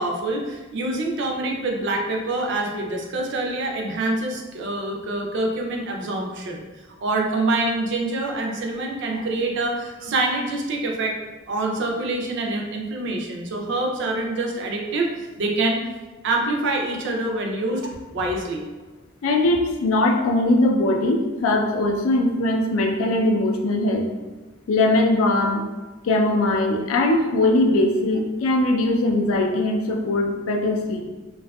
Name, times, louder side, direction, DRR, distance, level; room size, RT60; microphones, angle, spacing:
voice 1, 0.0-6.6 7.0-11.2 11.5-15.8 16.2-18.7, right 2 dB, 55° right, 1 dB, 0.4 m, -26 dB
voice 2, 19.2-24.1 24.7-25.6 26.0-31.0, left 2 dB, 75° left, 2 dB, 0.4 m, -20 dB
2.6 x 2.3 x 2.2 m, 1.2 s
head